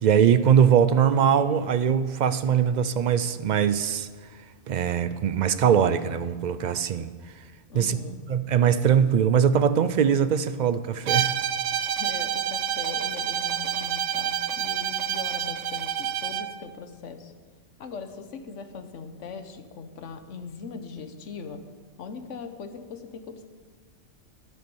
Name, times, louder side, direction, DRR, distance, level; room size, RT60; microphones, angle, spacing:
voice 1, 0.0-4.1 4.7-7.1 7.7-8.0 8.3-11.3, right 8 dB, 60° right, 13 dB, 0.4 m, -21 dB
voice 2, 7.7-8.2 12.0-17.3 17.8-21.6 22.0-23.4, left 5 dB, 80° left, 8 dB, 1.3 m, -40 dB
Bowed string instrument, 11.1-16.5, right 9 dB, 85° right, 1.0 m, -28 dB
11.0 x 9.5 x 7.1 m, 1.5 s
omnidirectional pair, 1.2 m